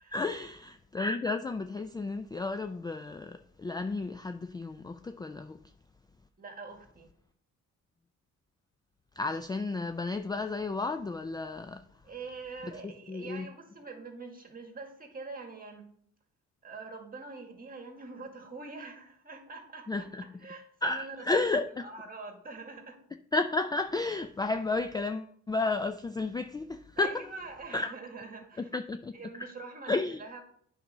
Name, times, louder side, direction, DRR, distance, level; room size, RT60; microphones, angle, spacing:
voice 1, 0.1-5.6 9.2-11.8 12.6-13.5 19.9-20.2 20.8-21.7 23.3-27.3 27.7-27.9 28.7-29.5 29.9-30.2, left 3 dB, 15° left, 0.3 m, -32 dB
voice 2, 6.4-7.1 12.0-15.9 16.6-21.5 21.8-23.0 27.0-28.8 29.1-30.4, right 4 dB, 30° right, 1.9 m, -44 dB
8.5 x 4.1 x 5.4 m
cardioid pair, 90°, 30 cm